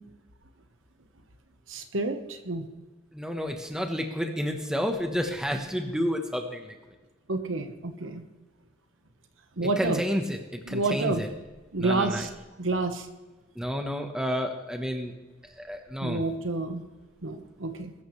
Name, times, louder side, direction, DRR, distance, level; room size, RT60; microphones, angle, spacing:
voice 1, 1.7-2.7 7.3-8.2 9.6-10.0 10.7-11.2 11.7-12.3 12.6-13.1 16.0-16.8 17.2-17.9, right 3 dB, 85° right, 6 dB, 1.3 m, -29 dB
voice 2, 3.1-6.7 9.6-11.3 11.8-12.3 13.5-15.1 15.4-16.2, equal, 5° right, 3 dB, 1.1 m, -30 dB
21.0 x 13.5 x 3.3 m, 1.2 s
head